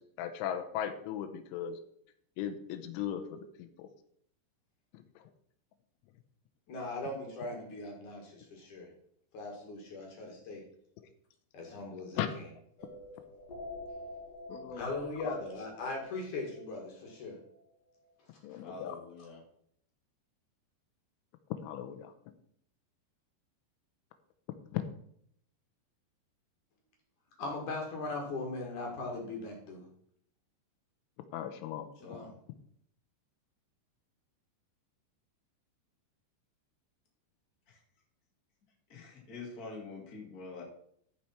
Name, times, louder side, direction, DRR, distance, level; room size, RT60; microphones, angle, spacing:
voice 1, 0.0-1.8 2.4-3.9 5.2-5.3 12.2-12.4 14.5-14.9 15.2-15.4 18.4-19.0 21.6-22.1 24.7-24.8 31.3-31.9, left 10 dB, 90° left, 7 dB, 3.2 m, -37 dB
voice 2, 6.7-8.9 9.3-10.6 11.5-12.4 14.7-17.4 18.5-18.6 27.4-29.8 32.0-32.3, left 2 dB, 55° left, 0 dB, 2.7 m, -39 dB
sound 1, 12.8-17.6, left 1 dB, 70° left, 1.4 m, -48 dB
voice 3, 18.6-19.4 32.0-32.3 37.7-37.8 38.9-40.6, left 3 dB, 35° left, -1 dB, 1.6 m, -46 dB
13.5 x 5.8 x 4.3 m, 0.68 s
omnidirectional pair, 5.5 m